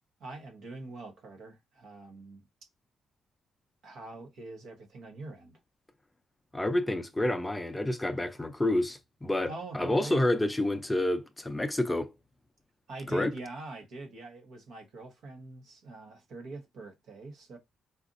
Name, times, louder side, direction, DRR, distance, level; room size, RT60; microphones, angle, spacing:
voice 1, 0.2-2.4 3.8-5.6 9.5-10.2 12.9-17.6, right 2 dB, 70° right, 1.0 m, -43 dB
voice 2, 6.5-12.1 13.1-13.3, left 1 dB, 15° left, 0.5 m, -29 dB
3.9 x 2.5 x 2.5 m
cardioid pair, 90°, 0 cm